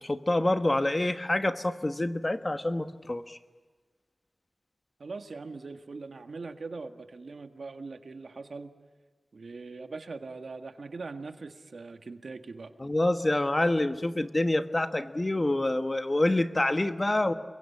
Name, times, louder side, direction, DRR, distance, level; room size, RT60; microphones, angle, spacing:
voice 1, 0.0-3.4 12.8-17.3, left 1 dB, 25° left, 9 dB, 1.3 m, -27 dB
voice 2, 5.0-8.7 9.3-12.7, right 3 dB, 70° right, 7 dB, 1.7 m, -41 dB
29.5 x 22.5 x 8.5 m, 1.4 s
wide cardioid pair, 80°, 0 cm